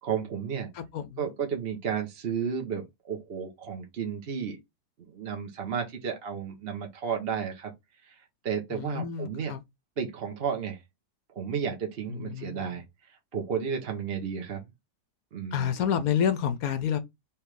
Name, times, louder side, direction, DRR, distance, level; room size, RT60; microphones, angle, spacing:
voice 1, 0.0-0.7 1.2-4.6 5.0-7.7 8.0-8.1 8.4-9.5 10.0-10.8 11.3-12.8 13.3-14.6 15.3-15.7, right 7 dB, 45° right, 0.9 m, -32 dB
voice 2, 0.7-1.3 8.7-9.6 12.1-12.8 15.5-17.0, left 8 dB, 65° left, 1.0 m, -29 dB
3.5 x 3.1 x 4.7 m
omnidirectional pair, 1.9 m